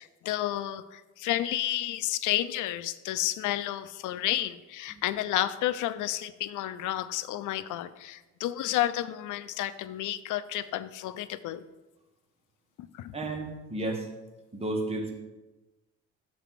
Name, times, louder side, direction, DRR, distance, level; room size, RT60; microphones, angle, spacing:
voice 1, 0.0-11.6 12.8-13.1, left 14 dB, 80° left, 15 dB, 0.5 m, -31 dB
voice 2, 13.1-14.1 14.5-15.1, right 2 dB, 20° right, 1 dB, 1.4 m, -32 dB
6.7 x 4.2 x 6.0 m, 1.1 s
cardioid pair, 90°, 30 cm